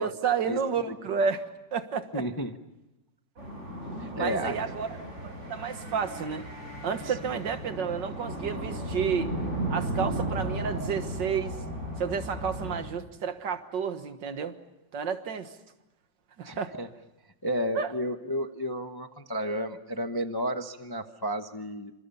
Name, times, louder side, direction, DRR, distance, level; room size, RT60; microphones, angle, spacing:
voice 1, 0.0-1.4 1.7-2.2 4.1-4.9 5.2-6.4 6.8-9.3 9.7-11.6 12.0-14.5 14.9-15.5 16.4-16.7 17.8-17.9, right 6 dB, 75° right, 9 dB, 2.1 m, -31 dB
voice 2, 2.1-2.6 4.0-4.6 7.0-7.2 16.4-16.9 17.4-21.9, equal, 20° left, 7 dB, 0.7 m, -32 dB
sound 1, 3.4-12.8, right 1 dB, 40° right, 8.4 m, -35 dB
28.5 x 26.5 x 5.6 m, 0.95 s
omnidirectional pair, 2.0 m